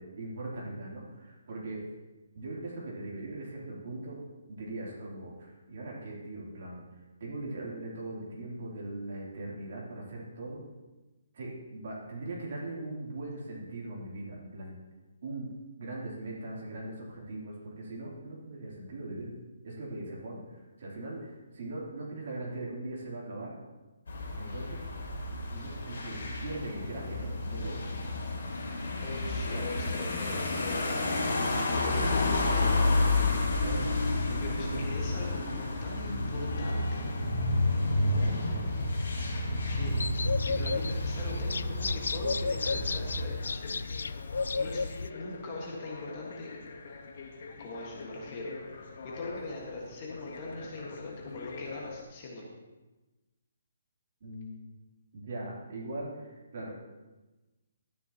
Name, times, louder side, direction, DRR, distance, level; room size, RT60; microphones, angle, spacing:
voice 1, 0.0-1.8 2.3-4.2 4.5-6.8 7.2-10.6 11.3-14.7 15.2-15.5 15.8-19.3 19.6-23.5 24.4-24.8 25.5-27.8 33.6-33.9 34.2-34.9 38.2-38.7 54.2-54.7 55.1-56.8, right 2 dB, 45° right, -4 dB, 2.9 m, -40 dB
sound 1, 24.1-43.2, left 2 dB, 65° left, 2.9 m, -30 dB
voice 2, 29.0-33.1 34.4-37.0 39.5-39.9 40.3-44.0 44.6-44.8 45.1-46.6 47.6-52.5, left 2 dB, 25° left, -2 dB, 1.5 m, -41 dB
sound 2, 39.9-45.1, left 4 dB, 90° left, 0.3 m, -33 dB
sound 3, 42.6-52.0, left 4 dB, 50° left, 1.1 m, -46 dB
12.5 x 10.0 x 2.9 m, 1.1 s
hypercardioid pair, 175°, 0 cm